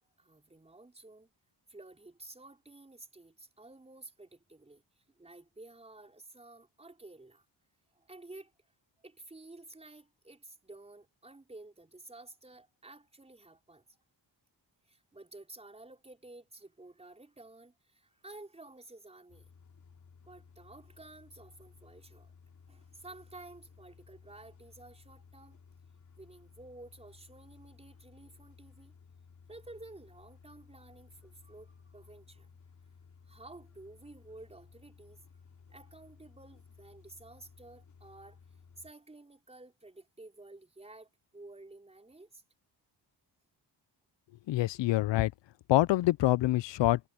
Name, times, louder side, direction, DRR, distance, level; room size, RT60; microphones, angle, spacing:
voice 1, 0.2-1.3 1.7-7.4 7.9-8.5 9.0-13.8 14.8-19.5 20.2-22.3 22.7-25.6 26.1-28.9 29.5-32.6 33.3-35.2 35.7-38.4 38.8-42.4, right 2 dB, 15° right, 4.8 m, -52 dB
sound 1, 19.3-38.9, left 5 dB, 45° left, 3.1 m, -58 dB
voice 2, 44.5-45.3 45.7-47.0, left 16 dB, 80° left, 0.5 m, -26 dB
wide cardioid pair, 150°, 43 cm